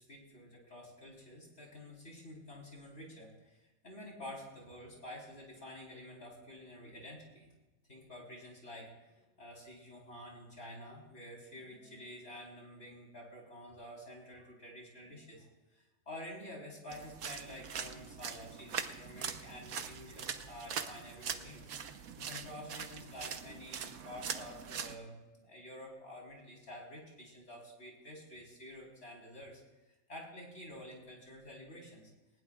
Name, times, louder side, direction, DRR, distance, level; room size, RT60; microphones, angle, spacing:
voice 1, 0.0-7.5 7.9-15.5 15.7-29.6 29.9-32.1, left 1 dB, 55° left, -2 dB, 4.3 m, -50 dB
sound 1, 16.9-25.0, right 7 dB, 85° right, 1.4 m, -42 dB
19.5 x 19.5 x 2.4 m, 1.1 s
omnidirectional pair, 1.5 m